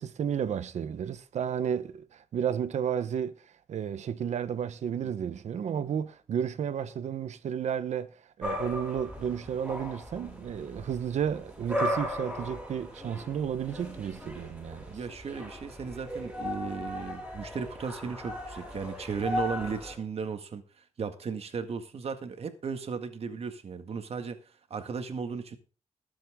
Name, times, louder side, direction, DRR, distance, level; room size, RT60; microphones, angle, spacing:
voice 1, 0.0-3.3 3.7-8.1 8.4-15.0, right 8 dB, 80° right, 1.0 m, -32 dB
voice 2, 5.0-5.4 14.9-25.6, right 5 dB, 60° right, 1.9 m, -36 dB
sound 1, 8.4-20.0, left 1 dB, 10° right, 6.9 m, -37 dB
19.5 x 7.7 x 3.7 m
cardioid pair, 95°, 12 cm